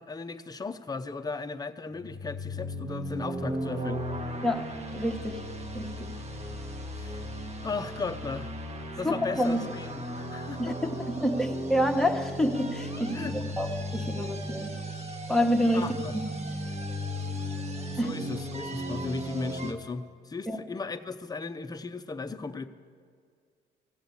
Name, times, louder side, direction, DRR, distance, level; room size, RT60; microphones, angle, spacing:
voice 1, 0.0-4.0 6.9-7.2 7.6-8.5 9.0-10.9 13.0-13.6 15.7-16.2 17.9-22.7, left 4 dB, 20° left, 8 dB, 0.6 m, -36 dB
sound 1, 1.9-19.7, equal, 30° right, 1.2 m, -36 dB
voice 2, 4.9-5.4 5.7-6.1 9.0-9.7 10.6-10.7 11.2-14.7 15.3-15.9 18.0-18.1 20.5-20.6, equal, ahead, 3 dB, 1.1 m, -28 dB
14.5 x 7.8 x 7.0 m, 2.1 s
cardioid pair, 90°, 20 cm